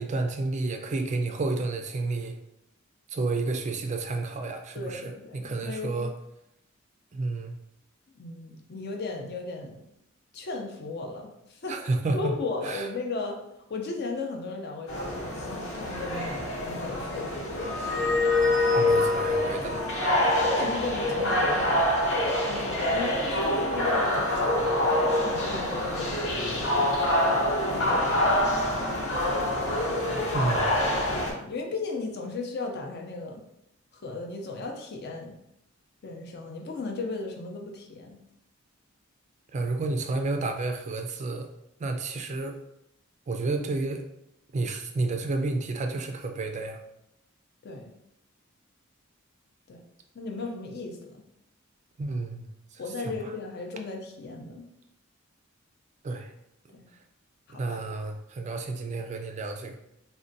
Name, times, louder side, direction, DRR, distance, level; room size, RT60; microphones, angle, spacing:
voice 1, 0.0-2.4 3.1-5.0 5.3-6.1 7.1-7.6 11.7-12.3 12.6-12.9 18.7-19.9 30.3-30.7 39.5-41.5 41.8-42.6 43.3-44.0 44.5-46.8 52.0-52.5 53.0-53.1 56.0-56.3 57.5-59.8, right 3 dB, 35° right, 5 dB, 0.3 m, -30 dB
voice 2, 4.7-6.1 8.1-9.8 10.3-11.8 12.1-13.4 13.7-17.8 20.3-21.9 22.4-24.4 25.0-26.9 27.7-28.4 31.2-33.4 34.0-35.4 36.0-38.2 47.6-47.9 49.7-49.8 50.1-51.2 52.8-54.7 56.7-56.8 57.5-57.8, left 3 dB, 55° left, 2 dB, 0.5 m, -36 dB
sound 1, 14.9-31.3, left 1 dB, 75° left, 0.8 m, -26 dB
3.6 x 2.1 x 2.6 m, 0.81 s
head